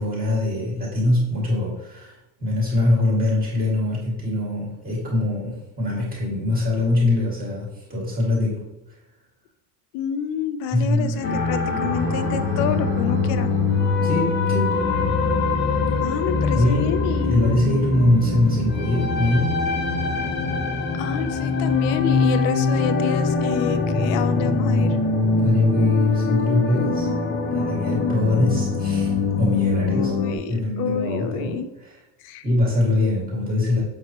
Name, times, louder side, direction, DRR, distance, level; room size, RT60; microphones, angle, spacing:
voice 1, 0.0-8.6 10.7-11.2 14.0-14.9 16.5-16.9 17.2-19.6 25.4-27.1 27.5-30.1 30.5-32.0 32.4-33.8, left 2 dB, 15° right, -5 dB, 2.1 m, -23 dB
voice 2, 9.9-13.5 16.0-17.6 21.0-25.0 29.9-31.7 32.2-32.4, left 8 dB, 60° left, 11 dB, 0.7 m, -28 dB
sound 1, 11.1-22.5, right 6 dB, 40° right, 1.1 m, -36 dB
sound 2, 11.2-30.4, left 4 dB, 25° left, 0.4 m, -23 dB
7.3 x 5.8 x 3.0 m, 0.96 s
cardioid pair, 175°, 49 cm